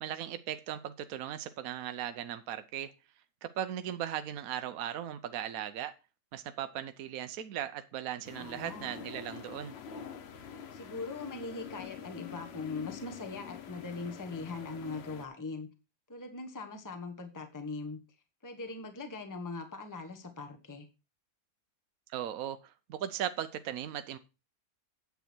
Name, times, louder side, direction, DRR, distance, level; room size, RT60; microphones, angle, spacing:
voice 1, 0.0-2.9 3.4-5.9 6.3-9.7 22.1-24.2, right 10 dB, 75° right, 9 dB, 1.1 m, -38 dB
sound 1, 8.2-15.3, left 8 dB, 50° left, 0.9 m, -46 dB
voice 2, 8.3-8.9 10.7-15.7 16.1-18.0 18.4-20.9, left 3 dB, 15° left, 5 dB, 1.2 m, -41 dB
9.3 x 8.2 x 4.4 m, 0.30 s
omnidirectional pair, 1.6 m